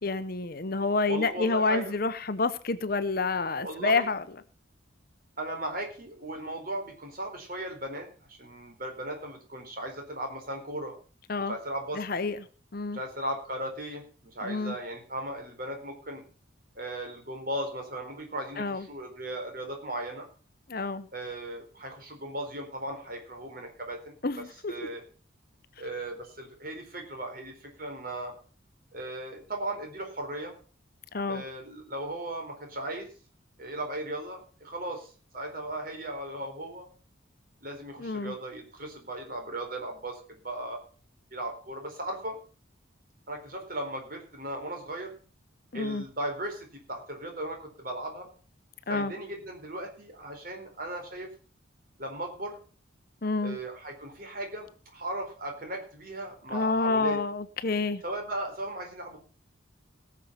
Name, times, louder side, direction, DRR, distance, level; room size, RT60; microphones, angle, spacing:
voice 1, 0.0-4.2 11.3-11.5 12.0-12.4 12.7-13.0 14.4-14.7 18.6-18.8 20.7-21.1 24.2-24.7 31.1-31.4 38.0-38.3 45.7-46.0 48.9-49.1 53.2-53.6 56.5-58.0, left 3 dB, 50° left, 13 dB, 0.9 m, -28 dB
voice 2, 1.1-1.9 3.6-4.1 5.4-10.9 11.5-12.0 12.9-16.2 16.7-20.3 21.1-24.2 24.7-25.0 25.8-28.3 28.9-30.5 31.3-33.1 33.6-36.9 37.6-40.8 41.3-42.4 43.3-45.2 45.7-48.3 48.9-51.3 52.0-52.6 53.4-57.2 58.0-59.2, right 1 dB, 45° right, 3 dB, 4.3 m, -37 dB
18.0 x 7.3 x 5.7 m, 0.39 s
head